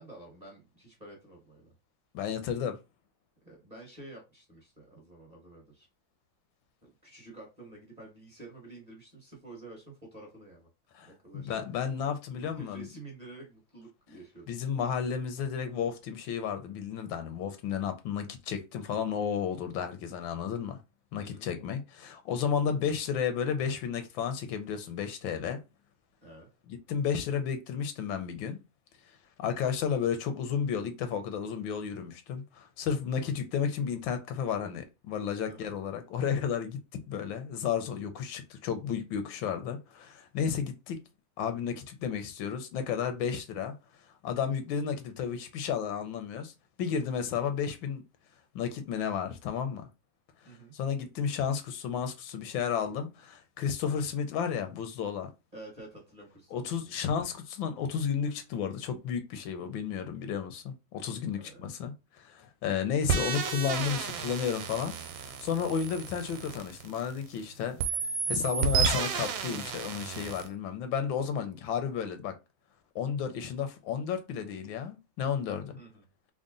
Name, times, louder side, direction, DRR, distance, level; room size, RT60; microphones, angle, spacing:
voice 1, 0.0-1.7 3.4-5.9 6.8-10.7 11.0-11.6 12.3-14.5 21.2-21.5 26.2-26.5 35.5-35.7 50.4-50.7 55.5-56.9 61.3-61.6 75.8-76.0, right 2 dB, 25° right, 1.2 m, -49 dB
voice 2, 2.1-2.8 10.9-12.9 14.5-20.8 21.1-25.6 26.7-28.6 29.4-36.8 37.1-41.0 41.4-43.7 44.2-46.5 46.8-48.0 48.5-49.9 50.7-55.3 56.5-64.9 65.2-68.0 68.3-72.3 72.9-75.8, left 7 dB, 80° left, 1.4 m, -32 dB
sound 1, 63.1-67.4 67.8-70.5, right 6 dB, 85° right, 1.4 m, -32 dB
3.7 x 2.1 x 3.8 m
omnidirectional pair, 2.1 m